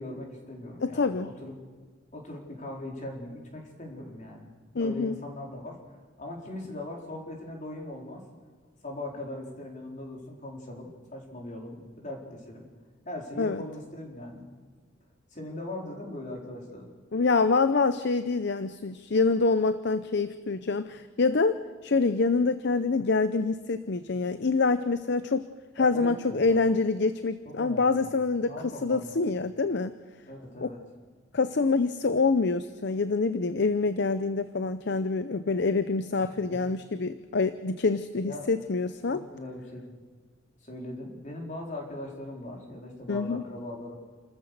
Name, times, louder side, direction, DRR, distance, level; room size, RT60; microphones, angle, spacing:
voice 1, 0.0-1.5 2.1-4.5 4.8-5.8 6.2-8.2 8.8-12.7 13.0-14.4 15.3-16.9 25.8-26.6 27.5-28.1 28.4-29.4 30.3-30.8 36.2-36.4 38.2-38.5 39.1-40.0 40.6-44.0, left 1 dB, 40° left, 0 dB, 4.3 m, -40 dB
voice 2, 0.8-1.3 4.7-5.2 13.4-13.6 17.1-25.5 25.8-29.9 30.6-30.7 31.3-39.2 43.1-43.4, left 4 dB, 55° left, 12 dB, 0.6 m, -26 dB
29.5 x 14.0 x 6.7 m, 1.5 s
head